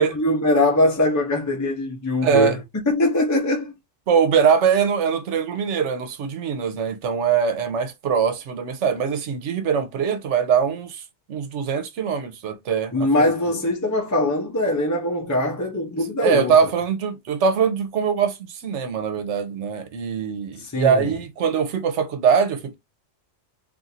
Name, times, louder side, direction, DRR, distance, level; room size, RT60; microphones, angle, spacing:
voice 1, 0.0-2.6 2.9-3.7 12.9-16.7 20.6-21.1, left 1 dB, 25° left, 0.4 m, -22 dB
voice 2, 2.2-2.6 4.1-11.0 11.3-12.9 13.2-13.3 16.2-22.7, right 7 dB, 85° right, 1.0 m, -22 dB
2.5 x 2.5 x 4.1 m
omnidirectional pair, 1.2 m